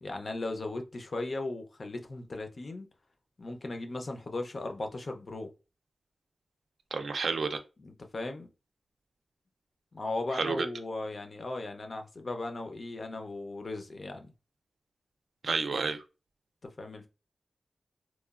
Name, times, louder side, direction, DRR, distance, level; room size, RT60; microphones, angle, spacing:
voice 1, 0.0-2.9 3.4-5.5 7.8-8.5 9.9-14.3 16.6-17.1, left 2 dB, 45° left, 0.5 m, -37 dB
voice 2, 6.9-7.6 10.3-10.7 15.4-16.0, right 4 dB, 70° right, 0.4 m, -30 dB
2.9 x 2.1 x 2.3 m
wide cardioid pair, 120°, 0 cm